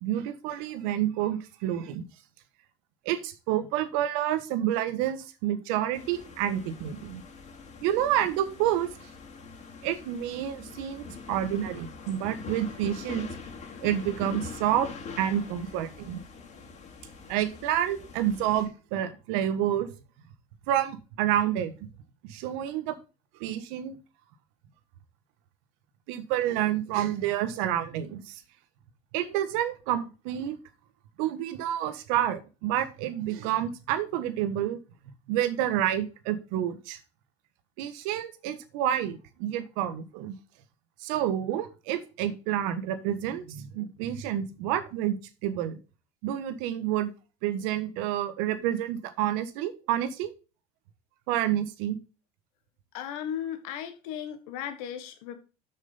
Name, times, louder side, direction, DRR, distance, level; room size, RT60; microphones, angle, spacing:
voice 1, 0.0-2.0 3.0-7.2 7.8-8.9 9.8-13.3 13.8-14.9 15.2-16.2 17.3-19.9 20.7-21.7 22.3-23.0 23.4-24.0 26.1-28.3 29.1-30.6 31.2-34.8 35.3-37.0 37.8-40.3 41.0-45.2 45.4-45.8 46.2-47.1 47.4-50.3 51.3-52.0, right 11 dB, 75° right, 1.4 m, -29 dB
sound 1, 5.9-18.6, left 4 dB, 40° left, 3.0 m, -43 dB
voice 2, 52.9-55.4, left 9 dB, 80° left, 1.6 m, -36 dB
6.7 x 6.5 x 5.5 m
supercardioid pair, 95°, 18 cm